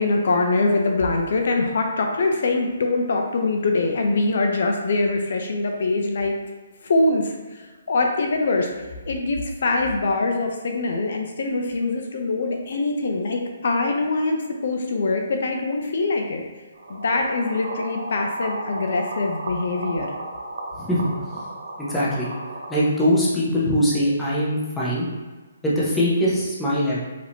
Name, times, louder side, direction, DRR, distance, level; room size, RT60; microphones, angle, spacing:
voice 1, 0.0-6.3 6.8-8.7 9.1-16.4 16.9-20.1, left 3 dB, 50° left, 3 dB, 0.5 m, -23 dB
sound 1, 16.7-22.8, right 1 dB, 65° right, 0.8 m, -34 dB
voice 2, 20.8-21.1 21.8-22.3 22.7-25.1 25.6-27.0, equal, 5° left, -9 dB, 0.6 m, -22 dB
4.9 x 2.7 x 3.4 m, 1.3 s
hypercardioid pair, 175°, 0 cm